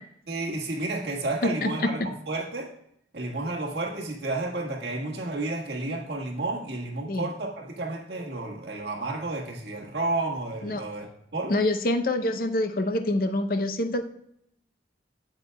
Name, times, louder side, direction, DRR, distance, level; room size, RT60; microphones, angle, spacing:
voice 1, 0.3-2.7 3.1-11.5, right 2 dB, 70° right, 0 dB, 1.6 m, -31 dB
voice 2, 1.4-1.9 7.1-7.3 10.6-10.8 11.5-14.1, left 1 dB, 50° left, 7 dB, 0.6 m, -26 dB
8.1 x 8.1 x 2.2 m, 0.75 s
head